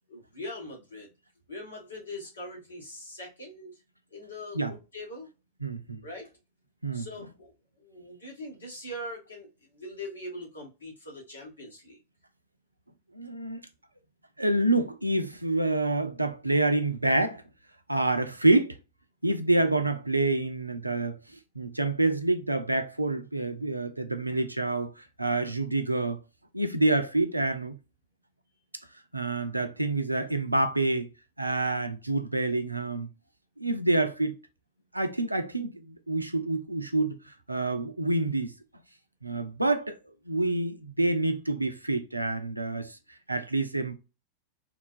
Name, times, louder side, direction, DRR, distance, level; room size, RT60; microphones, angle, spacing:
voice 1, 0.1-1.1 1.5-3.7 4.1-5.3 6.0-6.3 6.9-7.5 7.8-12.0, left 1 dB, 75° left, 1.4 m, -42 dB
voice 2, 5.6-6.1 6.8-7.1 13.1-13.6 14.4-17.4 17.9-18.8 19.2-26.2 26.5-27.7 29.1-31.1 31.4-33.1 33.6-34.4 34.9-38.5 39.2-40.0 40.3-43.0 43.3-43.9, right 2 dB, 85° right, 0.4 m, -27 dB
3.6 x 2.3 x 2.4 m
figure-of-eight pair, 90°, 0 cm